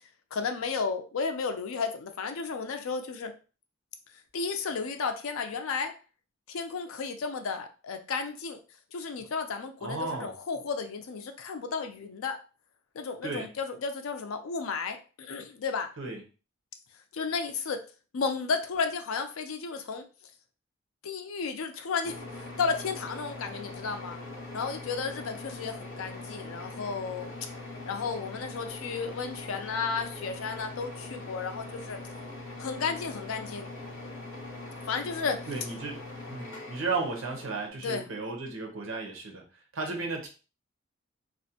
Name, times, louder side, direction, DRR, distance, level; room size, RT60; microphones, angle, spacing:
voice 1, 0.3-3.3 4.3-5.9 6.5-8.6 8.9-12.4 12.9-15.9 17.1-17.8 18.1-20.1 21.0-22.2 22.6-24.2 24.5-27.4 27.9-32.0 32.6-33.7 34.9-35.5 37.8-38.1 39.9-40.1, left 5 dB, 90° left, 7 dB, 0.4 m, -33 dB
voice 2, 9.8-10.3 13.2-13.5 16.0-16.2 35.5-36.0 36.3-39.4 39.7-40.3, right 3 dB, 75° right, 2 dB, 0.7 m, -34 dB
sound 1, 22.0-37.7, left 2 dB, 65° left, 1.0 m, -42 dB
2.4 x 2.1 x 2.7 m, 0.35 s
head